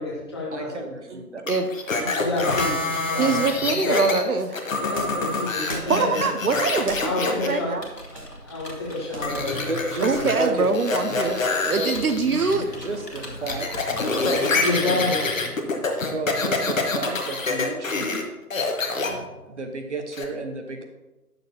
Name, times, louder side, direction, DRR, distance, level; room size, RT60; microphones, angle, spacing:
voice 1, 0.0-0.8 1.9-4.1 4.8-6.3 7.0-7.8 8.1-9.8 10.1-10.3 12.3-12.7 13.7-15.5 19.0-19.1, left 2 dB, 15° left, -5 dB, 1.1 m, -29 dB
voice 2, 0.5-1.4 9.4-10.7 11.1-11.9 12.8-13.7 14.1-15.0 16.0-18.2 19.0-20.8, right 2 dB, 45° right, 5 dB, 1.0 m, -32 dB
sound 1, 1.5-4.2 4.5-7.5 9.2-10.5 10.7-12.5 12.9-18.2 18.5-19.1 20.1-20.2, left 3 dB, 55° left, 1.2 m, -26 dB
voice 3, 3.2-4.7 5.9-7.8 10.0-11.3 11.7-12.6 13.4-14.0 15.7-16.1, right 4 dB, 65° right, 7 dB, 0.7 m, -24 dB
sound 2, 4.2-10.7, right 1 dB, 20° right, 1.1 m, -43 dB
Computer keyboard, 7.4-14.3, left 1 dB, 90° left, 2.0 m, -41 dB
9.9 x 6.7 x 2.8 m, 1.1 s
figure-of-eight pair, 150°, 47 cm